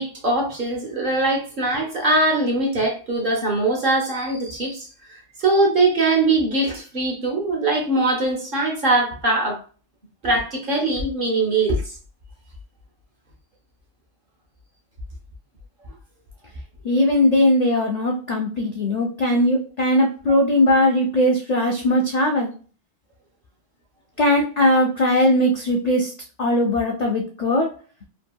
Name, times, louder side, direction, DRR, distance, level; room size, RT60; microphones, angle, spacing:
voice 1, 0.0-9.6 10.2-12.0 20.2-20.4, right 2 dB, 50° right, 0.9 m, -22 dB
voice 2, 16.8-22.5 24.2-26.1 26.4-27.7, left 1 dB, 65° left, 0.4 m, -19 dB
2.9 x 2.6 x 2.2 m
omnidirectional pair, 1.3 m